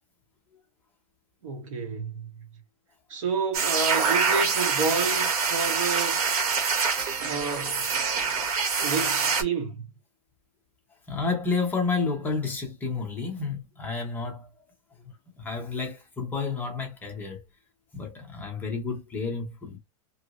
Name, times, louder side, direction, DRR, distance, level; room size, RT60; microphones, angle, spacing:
voice 1, 1.4-2.3 3.1-6.2 7.2-7.9 8.8-9.8, right 4 dB, 60° right, 1.1 m, -30 dB
sound 1, 3.5-9.4, right 5 dB, 85° right, 1.1 m, -25 dB
voice 2, 11.1-14.5 15.4-17.4 17.9-19.8, left 4 dB, 10° left, 0.6 m, -30 dB
2.9 x 2.5 x 2.9 m
supercardioid pair, 165°, 19 cm